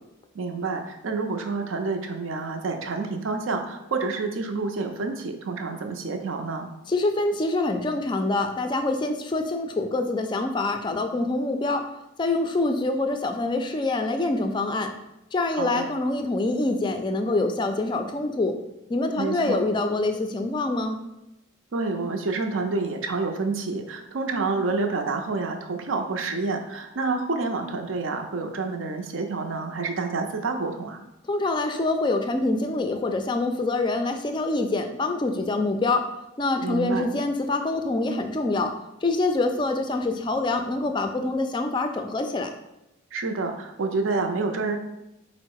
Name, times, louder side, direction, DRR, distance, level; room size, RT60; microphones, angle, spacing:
voice 1, 0.3-6.7 15.5-15.9 19.2-19.6 21.7-31.0 36.6-37.0 43.1-44.8, right 3 dB, 75° right, 5 dB, 0.5 m, -28 dB
voice 2, 6.9-11.8 12.2-14.9 15.3-18.5 18.9-21.0 31.3-36.0 36.4-38.7 39.0-42.5, left 2 dB, 25° left, 6 dB, 0.3 m, -25 dB
4.4 x 2.0 x 4.6 m, 0.91 s
head